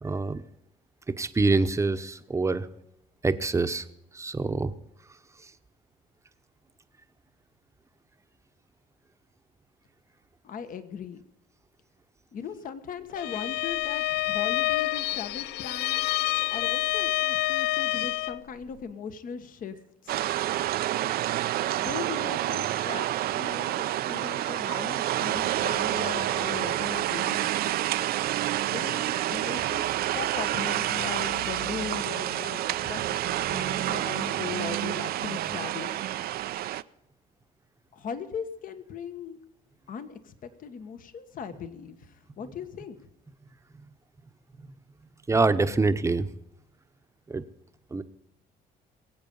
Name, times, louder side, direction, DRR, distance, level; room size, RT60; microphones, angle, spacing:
voice 1, 0.0-0.4 1.1-2.7 3.2-3.8 4.1-4.7 45.3-46.3 47.3-47.4 47.9-48.0, right 3 dB, 15° right, 10 dB, 0.9 m, -25 dB
voice 2, 10.4-11.2 12.3-16.0 16.5-19.8 20.0-20.2 21.8-27.9 28.7-36.0 37.9-39.4 39.9-43.0, left 7 dB, 55° left, 10 dB, 1.4 m, -39 dB
Bowed string instrument, 13.1-18.4, left 17 dB, 80° left, 0.5 m, -28 dB
sound 1, 20.1-36.8, right 13 dB, 65° right, 0.5 m, -28 dB
22.0 x 8.6 x 5.5 m, 0.86 s
cardioid pair, 110°, 17 cm